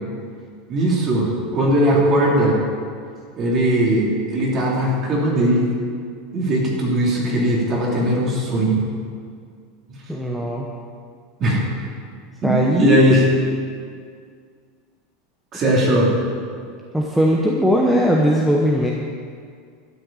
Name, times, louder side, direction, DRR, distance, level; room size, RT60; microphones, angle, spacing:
voice 1, 0.7-2.6 3.4-5.7 6.3-8.8 9.9-10.0 11.4-11.6 12.4-13.3 15.5-16.1, right 1 dB, 30° right, -3 dB, 2.9 m, -19 dB
voice 2, 10.1-10.7 12.4-13.0 16.9-18.9, equal, 5° right, -2 dB, 0.9 m, -18 dB
12.0 x 6.5 x 8.9 m, 2.1 s
supercardioid pair, 160°, 0 cm